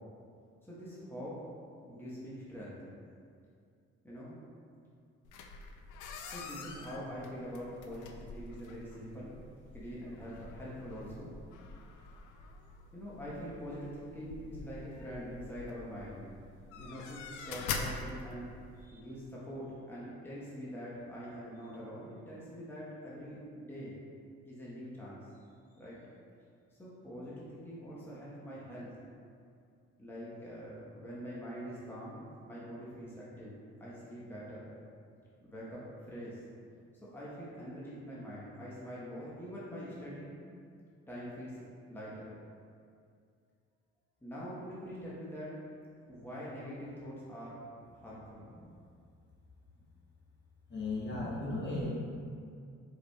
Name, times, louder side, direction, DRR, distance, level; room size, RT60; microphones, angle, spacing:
voice 1, 0.6-1.4 1.9-2.8 4.0-4.4 6.2-9.4 9.7-11.3 12.9-16.2 16.8-17.2 17.5-24.0 24.4-25.3 25.8-26.0 26.8-29.0 30.0-34.7 35.4-36.4 37.1-40.4 41.1-42.3 44.2-45.6 46.1-47.6 47.9-48.4, equal, 5° left, -7 dB, 1.0 m, -44 dB
sound 1, 5.2-18.9, left 4 dB, 80° left, 0.5 m, -45 dB
voice 2, 50.7-51.9, left 2 dB, 35° left, -6 dB, 1.2 m, -35 dB
4.8 x 4.7 x 2.3 m, 2.3 s
cardioid pair, 90°, 30 cm